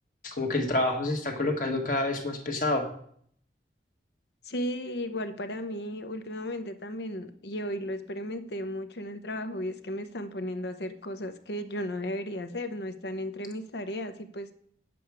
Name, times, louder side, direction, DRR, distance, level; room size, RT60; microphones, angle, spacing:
voice 1, 0.2-2.8, left 2 dB, 45° left, 3 dB, 1.5 m, -28 dB
voice 2, 4.4-14.5, left 1 dB, 70° left, 9 dB, 0.9 m, -35 dB
9.3 x 7.8 x 4.8 m, 0.63 s
head